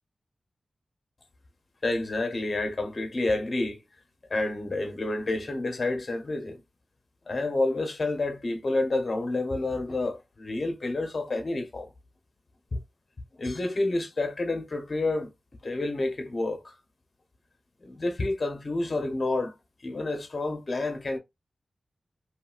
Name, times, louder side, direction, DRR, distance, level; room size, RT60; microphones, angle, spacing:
voice 1, 1.8-3.8 4.3-6.6 7.3-11.9 12.7-12.8 13.4-15.3 15.6-16.7 17.8-19.5 19.8-21.2, left 2 dB, 45° left, 0.9 m, -29 dB
3.1 x 2.6 x 2.4 m
wide cardioid pair, 80°, 0 cm